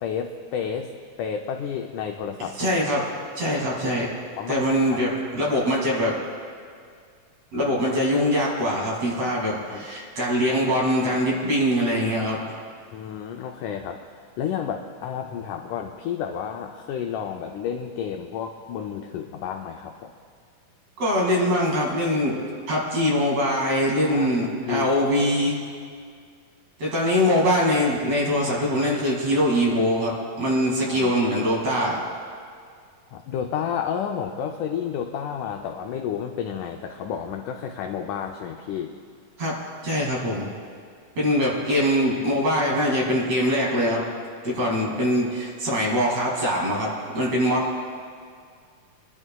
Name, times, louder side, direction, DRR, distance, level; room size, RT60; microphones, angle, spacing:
voice 1, 0.0-0.9 1.2-2.5 4.4-5.0 9.2-9.3 9.7-9.9 12.9-14.0 14.4-20.1 23.9-24.3 24.7-24.9 30.9-31.2 33.1-38.9, left 8 dB, 85° left, 3 dB, 1.8 m, -31 dB
voice 2, 2.4-3.0 3.4-4.1 4.5-6.1 7.5-12.4 21.0-22.4 22.7-25.6 26.8-32.0 39.4-39.6 39.8-40.5 41.2-44.0 44.4-47.8, equal, 45° right, -4 dB, 3.1 m, -23 dB
28.5 x 11.0 x 2.3 m, 2.1 s
omnidirectional pair, 4.2 m